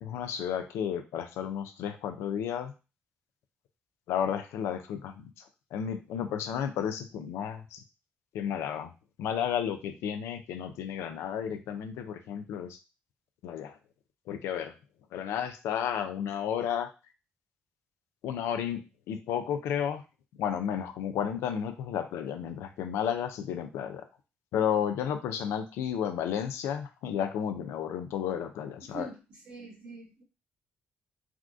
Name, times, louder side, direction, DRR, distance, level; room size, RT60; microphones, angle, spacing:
voice 1, 0.0-2.7 4.1-5.3 5.7-7.8 8.3-8.9 9.2-12.8 13.4-13.7 14.3-14.7 15.1-16.9 18.2-18.8 19.1-20.0 20.4-24.0 24.5-29.1, left 8 dB, 80° left, 7 dB, 0.4 m, -32 dB
voice 2, 28.8-30.2, right 2 dB, 60° right, -5 dB, 1.2 m, -44 dB
3.5 x 2.3 x 2.5 m, 0.30 s
supercardioid pair, 55°, 4 cm